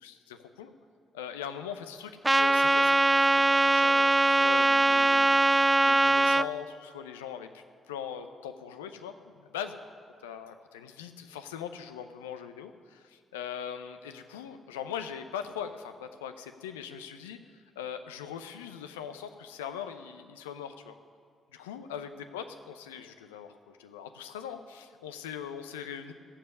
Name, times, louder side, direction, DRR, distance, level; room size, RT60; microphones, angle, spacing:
voice 1, 0.0-0.7 1.1-2.1 2.4-9.8 10.2-17.4 17.8-20.9 21.5-26.1, left 8 dB, 80° left, 9 dB, 0.7 m, -41 dB
Trumpet, 2.2-6.5, right 2 dB, 15° right, 0.4 m, -22 dB
14.5 x 7.4 x 9.6 m, 2.2 s
figure-of-eight pair, 40°, 0 cm